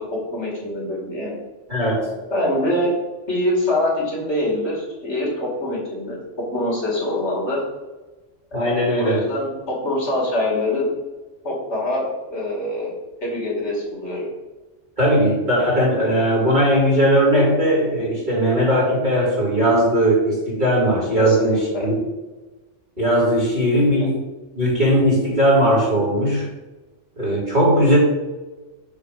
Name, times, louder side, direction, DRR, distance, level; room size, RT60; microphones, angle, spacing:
voice 1, 0.3-1.4 2.3-2.9 3.3-6.2 6.5-7.6 8.5-10.9 11.4-12.9 13.2-14.3 21.2-21.9 23.7-23.8, left 1 dB, 65° left, -4 dB, 2.8 m, -24 dB
voice 2, 1.7-2.1 8.5-9.2 15.0-21.9 23.0-24.2 24.5-26.5 27.2-28.0, equal, 40° right, -5 dB, 3.0 m, -18 dB
7.2 x 3.7 x 6.4 m, 1.2 s
omnidirectional pair, 1.2 m